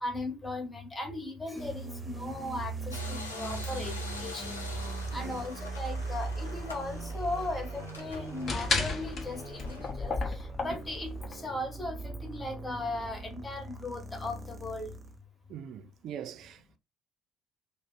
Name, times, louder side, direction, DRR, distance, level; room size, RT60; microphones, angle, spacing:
voice 1, 0.0-4.6 5.1-10.2 10.6-14.9, left 2 dB, 20° left, 1.0 m, -37 dB
sound 1, 1.6-15.2, right 3 dB, 25° right, 0.7 m, -40 dB
sound 2, 2.9-9.9, left 3 dB, 85° left, 0.5 m, -45 dB
voice 2, 5.1-5.4 15.5-16.8, right 9 dB, 55° right, 0.4 m, -43 dB
sound 3, 6.0-11.3, left 3 dB, 45° left, 0.8 m, -34 dB
2.4 x 2.0 x 3.7 m
figure-of-eight pair, 50°, 0 cm